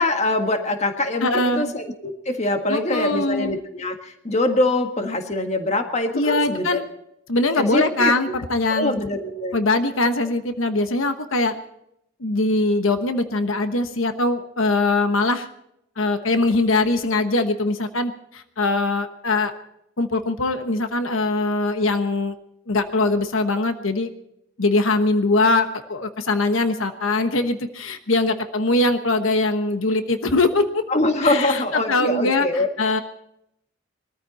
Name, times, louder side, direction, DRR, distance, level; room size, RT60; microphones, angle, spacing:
voice 1, 0.0-6.8 7.6-8.4 8.7-9.5 30.9-32.7, left 2 dB, 35° left, 5 dB, 1.8 m, -23 dB
voice 2, 1.2-1.7 2.7-3.6 6.1-6.8 7.3-8.9 9.5-11.5 12.2-15.5 16.0-19.5 20.0-22.3 22.7-24.1 24.6-30.8 31.2-31.6 31.9-33.0, left 2 dB, 80° left, 8 dB, 1.2 m, -22 dB
21.5 x 14.0 x 4.2 m, 0.78 s
head